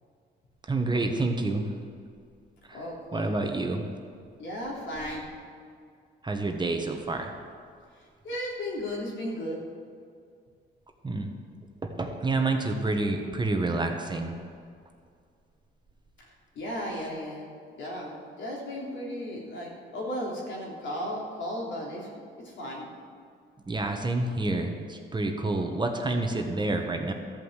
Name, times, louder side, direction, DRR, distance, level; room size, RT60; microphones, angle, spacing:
voice 1, 0.7-1.7 2.7-2.8 3.1-3.8 6.2-7.3 11.0-11.3 11.8-14.3 23.7-27.1, right 2 dB, 20° right, 4 dB, 1.3 m, -28 dB
voice 2, 2.7-3.4 4.4-5.2 8.2-9.6 16.5-17.5 17.8-22.1 22.4-22.9, equal, 75° left, -3 dB, 3.3 m, -35 dB
13.5 x 5.5 x 8.1 m, 2.2 s
cardioid pair, 90°, 20 cm